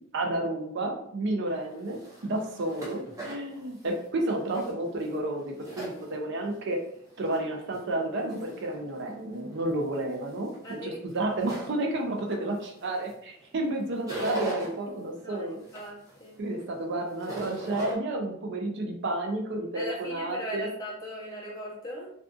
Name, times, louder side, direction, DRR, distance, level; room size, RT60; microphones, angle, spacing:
voice 1, 0.1-6.8 7.2-15.6 16.4-20.7, right 1 dB, 60° right, 2 dB, 0.5 m, -31 dB
sound 1, 1.5-6.5 6.9-7.8 8.3-8.8 9.3-13.1 13.4-14.7 15.2-17.9, right 2 dB, 15° right, 0.6 m, -39 dB
voice 2, 10.6-11.4 15.2-15.5 15.7-16.4 19.7-22.1, equal, 15° left, -5 dB, 0.7 m, -38 dB
2.5 x 2.4 x 2.3 m, 0.70 s
head